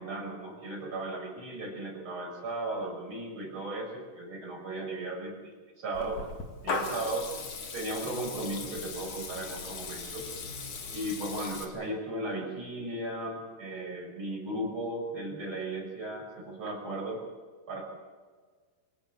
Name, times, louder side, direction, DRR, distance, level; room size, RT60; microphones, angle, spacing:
voice 1, 0.0-6.3 6.6-7.3 7.7-10.3 10.9-17.2 17.7-17.8, right 1 dB, 30° right, 0 dB, 6.5 m, -36 dB
Water tap faucet / Liquid, 5.9-11.6, left 4 dB, 50° left, 3.5 m, -38 dB
25.5 x 18.0 x 7.7 m, 1.5 s
omnidirectional pair, 4.8 m